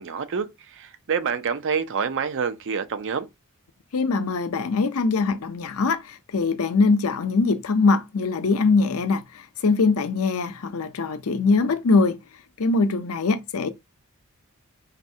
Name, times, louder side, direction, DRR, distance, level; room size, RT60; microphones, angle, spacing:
voice 1, 0.0-3.3, right 6 dB, 55° right, 0.5 m, -27 dB
voice 2, 3.9-12.2 12.6-13.7, left 4 dB, 70° left, 0.6 m, -22 dB
4.0 x 3.2 x 2.7 m
head